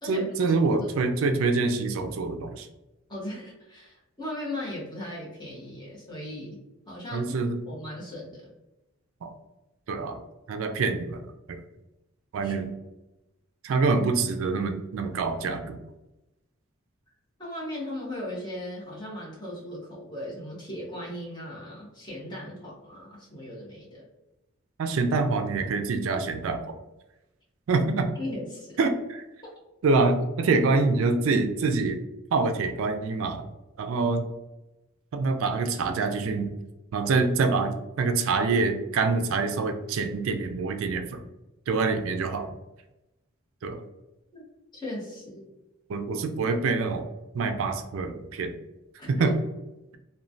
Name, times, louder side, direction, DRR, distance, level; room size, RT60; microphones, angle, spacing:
voice 1, 0.0-2.7 7.1-7.6 9.2-9.3 9.9-10.2 10.5-11.6 12.3-12.7 13.6-15.8 24.8-26.8 27.7-28.1 28.8-28.9 29.8-32.0 32.3-33.5 33.8-34.3 35.1-36.5 36.9-41.2 41.7-42.5 43.6-43.8 45.9-47.1 47.3-48.5 49.1-49.3, right 4 dB, 75° right, 6 dB, 0.4 m, -25 dB
voice 2, 3.1-6.6 6.9-7.3 7.7-8.5 12.4-12.5 17.4-24.0 28.2-28.9 44.3-44.4 44.7-45.5 49.0-49.4, left 1 dB, 20° left, -5 dB, 1.0 m, -37 dB
3.0 x 2.2 x 2.5 m, 0.97 s
head